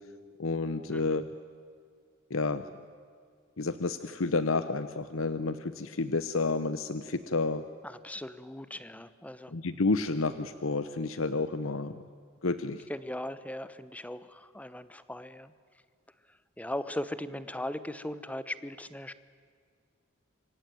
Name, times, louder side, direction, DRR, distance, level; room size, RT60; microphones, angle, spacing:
voice 1, 0.4-1.3 2.3-2.6 3.6-7.6 9.5-12.0 12.4-12.8, left 3 dB, 75° left, 12 dB, 0.9 m, -30 dB
voice 2, 7.8-9.5 12.9-15.5 16.6-19.1, left 1 dB, 5° left, 14 dB, 0.9 m, -38 dB
26.0 x 24.0 x 9.3 m, 2.1 s
head